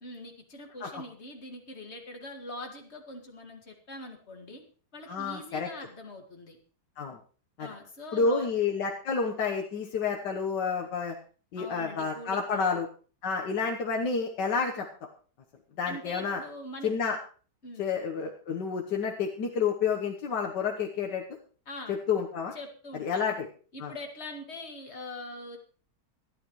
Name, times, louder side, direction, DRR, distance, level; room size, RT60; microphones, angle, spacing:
voice 1, 0.0-4.6 4.9-6.6 7.6-8.5 11.6-12.8 15.9-17.1 17.6-17.9 21.7-22.0 22.5-23.3 23.7-25.6, left 1 dB, 40° left, 3 dB, 2.4 m, -43 dB
voice 2, 5.1-5.7 7.0-7.2 7.6-7.7 8.1-11.1 11.5-12.9 13.2-14.9 15.8-16.4 16.8-17.2 17.8-21.2 21.9-22.5 23.0-23.5 23.8-23.9, left 5 dB, 90° left, 1 dB, 1.8 m, -29 dB
26.0 x 9.5 x 3.1 m, 0.40 s
omnidirectional pair, 1.8 m